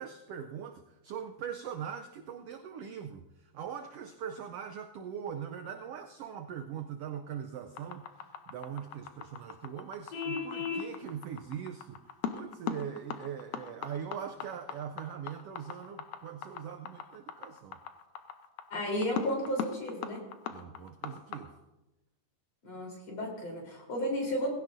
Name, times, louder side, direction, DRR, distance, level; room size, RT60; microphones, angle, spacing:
voice 1, 0.0-17.8 20.5-21.6, right 8 dB, 80° right, 6 dB, 1.4 m, -41 dB
sound 1, 7.8-21.4, left 8 dB, 80° left, 2.3 m, -39 dB
Vehicle horn car horn honking, 10.1-10.9, left 6 dB, 65° left, 2.3 m, -34 dB
voice 2, 18.7-20.2 22.6-24.5, equal, 40° left, -1 dB, 4.4 m, -33 dB
19.5 x 16.5 x 2.7 m, 0.99 s
omnidirectional pair, 3.4 m